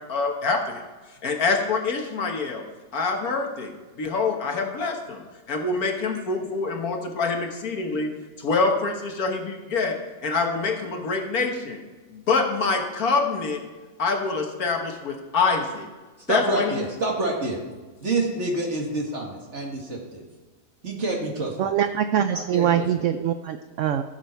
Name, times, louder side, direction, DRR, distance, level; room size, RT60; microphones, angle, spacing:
voice 1, 0.1-0.8 1.2-2.6 2.9-8.1 8.4-10.0 10.2-11.8 12.1-13.6 14.0-15.9 16.3-16.8, left 4 dB, 65° left, 3 dB, 1.8 m, -25 dB
voice 2, 16.3-17.6 18.0-20.2 20.8-21.7 22.3-22.9, right 2 dB, 45° right, 0 dB, 2.3 m, -28 dB
voice 3, 21.6-24.0, right 9 dB, 65° right, 9 dB, 0.7 m, -23 dB
15.0 x 7.6 x 4.5 m, 1.3 s
omnidirectional pair, 1.7 m